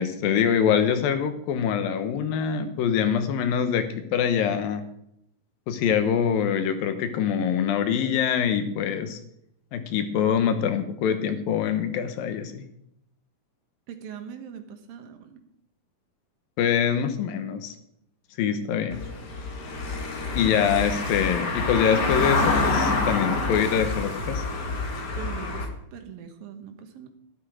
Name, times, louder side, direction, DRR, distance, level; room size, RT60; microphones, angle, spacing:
voice 1, 0.0-4.8 5.7-9.2 9.7-12.7 16.6-17.8 18.4-19.0 20.4-24.4, left 8 dB, 80° left, 9 dB, 2.9 m, -24 dB
voice 2, 13.9-15.4 25.2-27.1, right 8 dB, 80° right, 7 dB, 3.0 m, -41 dB
Car passing by / Engine, 18.9-25.7, left 3 dB, 40° left, 1.6 m, -27 dB
12.0 x 12.0 x 5.0 m, 0.75 s
omnidirectional pair, 4.0 m